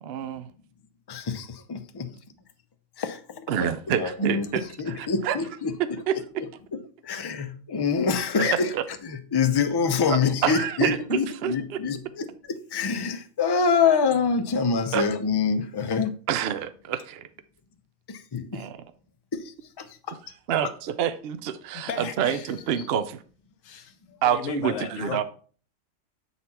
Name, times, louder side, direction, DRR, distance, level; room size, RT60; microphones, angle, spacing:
voice 1, 0.0-0.5 3.5-5.4 5.8-6.4 8.4-8.8 10.1-11.8 14.9-15.1 16.3-17.3 18.5-18.8 20.5-23.2 24.2-25.2, right 9 dB, 60° right, 0.7 m, -28 dB
voice 2, 1.1-2.1 3.0-5.7 6.7-8.7 9.0-16.2 18.1-18.6 19.3-19.4 19.8-19.9, left 5 dB, 35° left, 0.4 m, -26 dB
voice 3, 21.7-22.4 23.7-23.8 24.3-25.2, left 8 dB, 75° left, 1.2 m, -34 dB
8.0 x 4.2 x 4.2 m
omnidirectional pair, 1.4 m